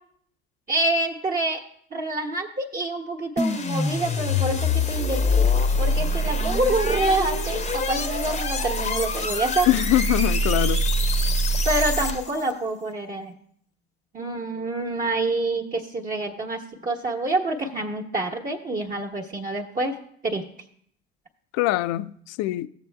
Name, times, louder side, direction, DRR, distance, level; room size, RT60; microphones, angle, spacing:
voice 1, 0.7-1.6 1.9-5.5 5.8-9.7 11.6-13.3 14.1-20.0 20.2-20.5, right 2 dB, 25° right, 1.1 m, -27 dB
sound 1, 3.4-12.5, left 1 dB, 20° left, 0.7 m, -24 dB
voice 2, 9.7-10.9 21.5-22.7, left 15 dB, 55° left, 0.5 m, -23 dB
15.5 x 7.0 x 2.3 m
hypercardioid pair, 75°, 31 cm